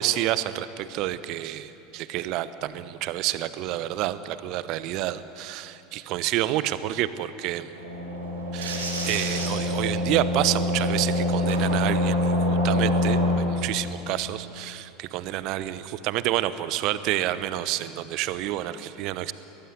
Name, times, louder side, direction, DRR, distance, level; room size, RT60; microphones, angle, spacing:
voice 1, 0.0-7.7 8.5-19.3, right 14 dB, 50° right, 14 dB, 1.0 m, -29 dB
sound 1, 7.7-13.3, left 1 dB, 80° right, 4.5 m, -25 dB
22.5 x 19.0 x 9.7 m, 2.8 s
figure-of-eight pair, 75°, 0 cm